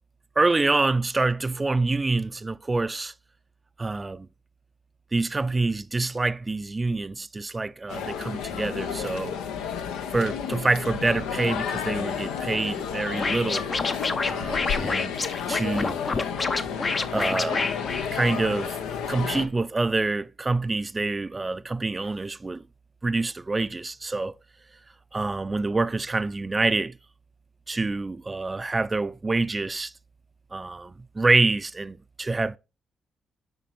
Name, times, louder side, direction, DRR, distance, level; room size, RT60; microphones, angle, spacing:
voice 1, 0.4-3.1 3.8-4.3 5.1-9.4 10.1-13.7 14.3-15.1 15.5-16.0 17.1-17.7 18.1-18.8 19.1-22.6 23.0-24.3 25.1-27.0 27.7-29.9 30.5-32.6, right 3 dB, 30° right, 0.4 m, -26 dB
sound 1, 7.9-19.5, left 7 dB, 85° left, 0.6 m, -31 dB
Scratching (performance technique), 13.2-18.7, left 3 dB, 40° left, 0.6 m, -28 dB
7.0 x 5.1 x 3.1 m
supercardioid pair, 50°, 0 cm